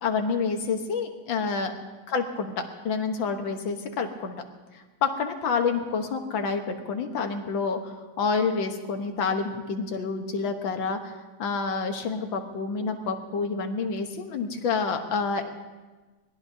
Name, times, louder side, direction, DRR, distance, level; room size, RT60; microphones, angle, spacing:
voice 1, 0.0-1.7 2.1-2.5 2.9-4.4 5.0-11.1 11.4-15.4, left 5 dB, 80° left, 5 dB, 1.9 m, -28 dB
24.0 x 19.0 x 2.7 m, 1.2 s
omnidirectional pair, 2.1 m